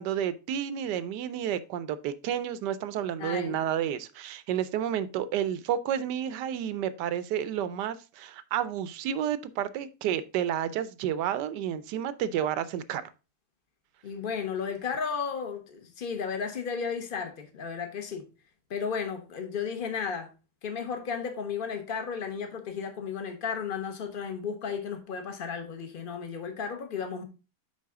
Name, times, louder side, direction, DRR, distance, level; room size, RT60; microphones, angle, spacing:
voice 1, 0.0-13.1, right 10 dB, 85° right, 1.2 m, -31 dB
voice 2, 3.2-3.6 14.0-18.2 18.7-20.3 20.6-27.2, left 6 dB, 35° left, 1.1 m, -34 dB
9.5 x 4.1 x 3.6 m
omnidirectional pair, 1.8 m